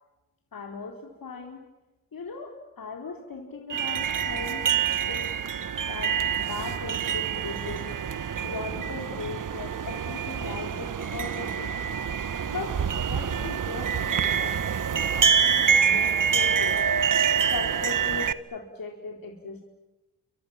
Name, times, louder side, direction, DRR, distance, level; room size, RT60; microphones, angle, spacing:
voice 1, 0.5-1.6 2.1-5.3 5.9-7.9 8.4-11.7 12.5-14.5 14.9-16.8 17.5-19.6, left 3 dB, 55° left, 2 dB, 4.6 m, -38 dB
sound 1, 3.7-18.3, right 7 dB, 50° right, 1.4 m, -26 dB
29.5 x 26.0 x 7.4 m, 1.1 s
cardioid pair, 55°, 41 cm